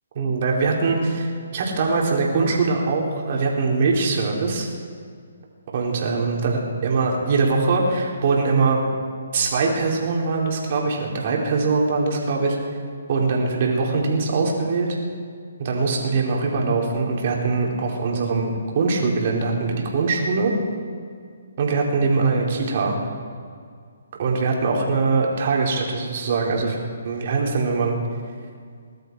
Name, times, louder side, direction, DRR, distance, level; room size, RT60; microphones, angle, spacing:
voice 1, 0.2-4.7 5.7-8.8 9.3-12.6 13.1-15.0 15.6-20.5 21.6-23.0 24.2-26.8 27.0-28.0, right 4 dB, 50° right, -1 dB, 3.6 m, -22 dB
21.0 x 12.0 x 4.6 m, 2.1 s
hypercardioid pair, 145°, 0 cm